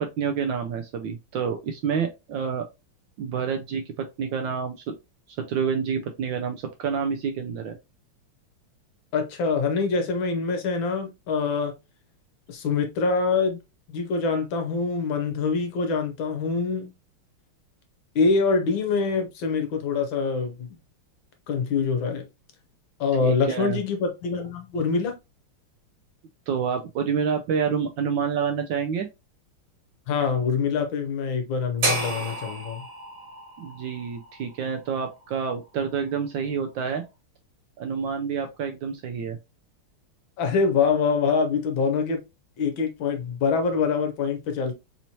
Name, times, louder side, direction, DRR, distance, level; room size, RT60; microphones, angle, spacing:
voice 1, 0.0-2.6 3.2-5.0 5.3-7.8 23.2-23.8 26.5-29.1 33.6-37.0 37.8-39.4, right 6 dB, 75° right, 1.1 m, -28 dB
voice 2, 9.1-11.7 12.5-13.6 13.9-16.9 18.1-20.8 21.5-22.2 23.0-25.2 30.1-32.8 40.4-42.2 42.6-44.7, left 5 dB, 70° left, 1.4 m, -25 dB
sound 1, 31.8-35.9, right 2 dB, 40° right, 2.0 m, -32 dB
4.2 x 3.0 x 2.7 m
omnidirectional pair, 2.4 m